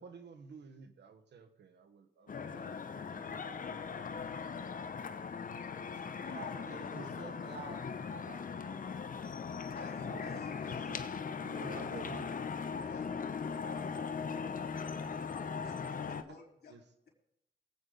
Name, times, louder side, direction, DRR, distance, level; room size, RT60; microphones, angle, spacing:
voice 1, 0.0-4.4 5.8-7.2 10.0-10.4 10.7-11.0 11.4-12.3 16.7-16.8, right 5 dB, 90° right, 8 dB, 1.3 m, -52 dB
sound 1, 2.3-16.2, left 5 dB, 50° left, 0.8 m, -39 dB
voice 2, 6.3-8.6, right 4 dB, 70° right, 0 dB, 3.3 m, -49 dB
voice 3, 9.7-11.0 12.6-13.3 15.4-17.1, left 5 dB, 65° left, 0 dB, 4.1 m, -55 dB
23.5 x 8.4 x 3.9 m, 0.83 s
cardioid pair, 90°, 18 cm